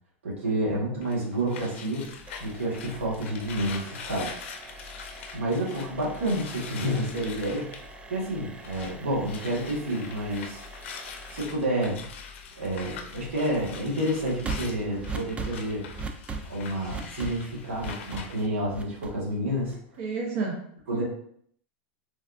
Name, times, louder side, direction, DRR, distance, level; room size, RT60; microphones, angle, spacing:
voice 1, 0.2-2.1 2.4-4.4 5.3-7.7 8.1-10.6 11.3-12.0 12.5-15.8 16.5-19.8 20.9-21.0, right 1 dB, 90° right, -3 dB, 1.2 m, -29 dB
sound 1, 1.0-9.0 9.2-18.5, left 6 dB, 75° left, 0.4 m, -43 dB
sound 2, 2.0-20.0, right 3 dB, 15° right, 0.3 m, -42 dB
voice 2, 19.7-20.6 20.9-21.0, right 4 dB, 55° right, -1 dB, 0.7 m, -31 dB
3.3 x 2.3 x 2.4 m, 0.65 s
hypercardioid pair, 115°, 7 cm